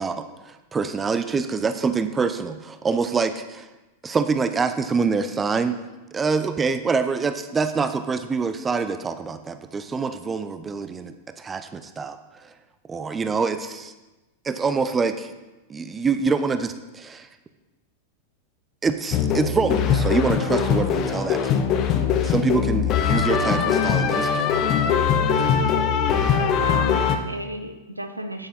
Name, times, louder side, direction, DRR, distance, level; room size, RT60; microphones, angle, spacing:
voice 1, 0.0-3.7 4.0-5.8 6.1-12.2 12.4-12.5 12.9-13.9 14.4-15.3 15.7-17.3 18.8-21.6 22.2-24.5, right 5 dB, 15° right, 10 dB, 0.6 m, -25 dB
sound 1, 19.1-27.2, left 7 dB, 35° left, 0.9 m, -21 dB
voice 2, 26.4-28.5, right 1 dB, 85° right, 8 dB, 0.8 m, -33 dB
9.1 x 8.8 x 4.2 m, 1.1 s
figure-of-eight pair, 90°, 0 cm